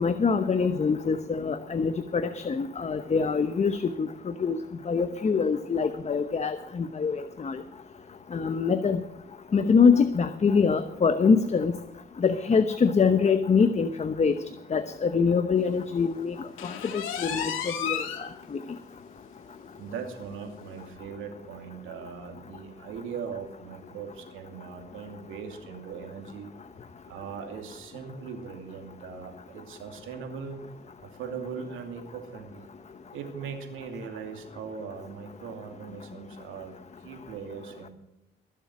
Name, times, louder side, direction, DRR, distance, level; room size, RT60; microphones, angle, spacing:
voice 1, 0.0-4.1 4.4-4.6 4.9-7.6 8.3-9.0 9.5-11.8 12.2-14.4 14.7-16.4 16.6-18.6, left 5 dB, 35° left, 10 dB, 0.9 m, -24 dB
sound 1, 16.6-18.3 18.7-18.8 19.3-19.4 19.7-19.8 20.8-20.9, left 9 dB, 90° left, 1.9 m, -32 dB
voice 2, 19.8-26.5 27.1-30.6 31.0-32.7 33.1-36.7 37.0-37.9, right 6 dB, 90° right, 4 dB, 2.6 m, -40 dB
21.0 x 7.5 x 6.0 m, 0.91 s
cardioid pair, 90°, 20 cm